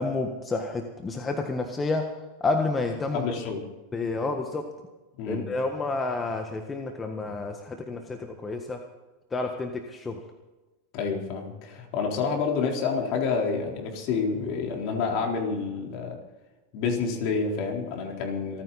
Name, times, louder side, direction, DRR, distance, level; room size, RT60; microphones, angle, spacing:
voice 1, 0.0-2.1 2.4-3.2 3.9-4.6 5.3-8.8 9.3-10.2, left 3 dB, 20° left, 4 dB, 1.5 m, -29 dB
voice 2, 3.1-3.6 5.2-5.4 10.9-16.2 16.7-18.6, left 5 dB, 55° left, 1 dB, 4.0 m, -28 dB
27.0 x 9.6 x 4.2 m, 1.1 s
hypercardioid pair, 115°, 0 cm